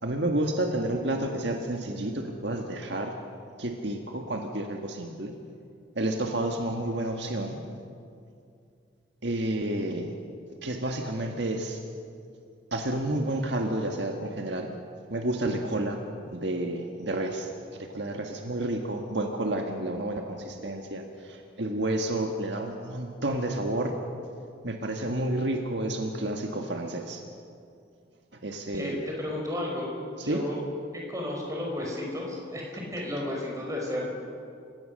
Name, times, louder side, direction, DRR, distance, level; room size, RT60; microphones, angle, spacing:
voice 1, 0.0-3.1 3.6-5.3 5.9-7.6 9.2-10.1 10.6-11.8 12.7-14.7 15.1-16.0 16.3-17.5 17.9-23.9 24.6-27.2 28.4-29.0 30.3-30.4, right 1 dB, 65° right, 3 dB, 1.6 m, -30 dB
voice 2, 28.7-29.9 30.2-30.6 30.9-34.1, left 1 dB, 15° right, -1 dB, 5.2 m, -33 dB
30.0 x 17.5 x 6.6 m, 2.4 s
head